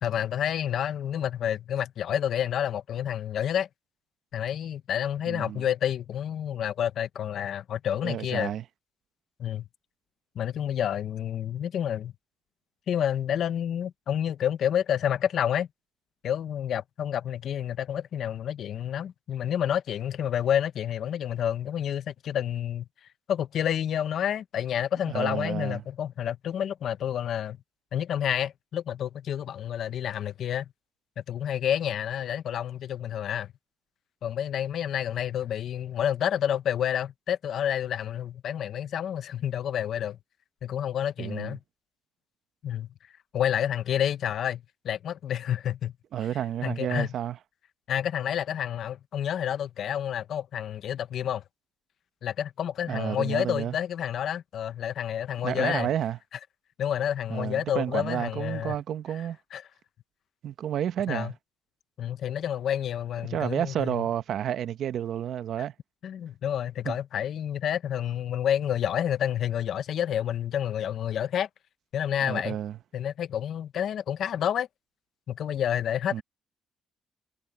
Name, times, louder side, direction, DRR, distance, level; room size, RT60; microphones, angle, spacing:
voice 1, 0.0-3.7 4.3-8.5 9.4-9.7 10.4-12.1 12.9-15.7 16.2-22.9 23.3-27.6 27.9-30.7 31.2-33.5 34.2-40.2 40.6-41.6 42.6-42.9 43.3-45.9 46.6-47.1 47.9-51.4 52.2-55.9 56.8-58.7 59.5-59.6 61.1-61.3 62.0-64.0 66.0-71.5 71.9-72.6 72.9-74.7 75.3-76.2, left 9 dB, 65° left, 0.9 m, -29 dB
voice 2, 5.3-5.6 8.0-8.6 25.1-25.8 41.2-41.6 46.1-47.4 52.9-53.8 55.4-56.2 57.3-59.4 60.4-61.3 63.3-65.7 66.8-67.0 72.2-72.8 76.1-76.2, right 10 dB, 65° right, 0.9 m, -30 dB
cardioid pair, 100°, 0 cm